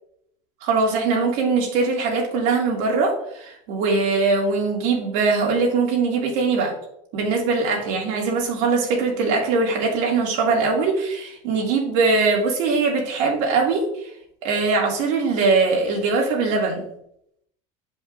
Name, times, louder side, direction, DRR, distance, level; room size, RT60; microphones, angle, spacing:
voice 1, 0.6-6.7 7.1-13.9 14.4-16.9, right 4 dB, 70° right, 0 dB, 2.5 m, -21 dB
10.5 x 5.2 x 2.6 m, 0.71 s
cardioid pair, 155°, 17 cm